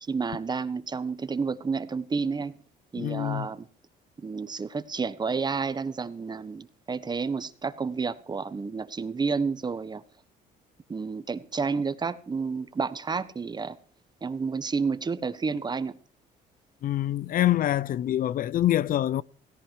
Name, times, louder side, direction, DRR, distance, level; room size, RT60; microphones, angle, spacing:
voice 1, 0.0-2.6 2.9-3.7 4.2-10.0 10.9-13.8 14.2-15.9, right 5 dB, 25° right, 1.3 m, -30 dB
voice 2, 3.0-3.5 16.8-19.2, left 13 dB, 55° left, 0.7 m, -25 dB
17.0 x 17.0 x 4.7 m
cardioid pair, 120°, 17 cm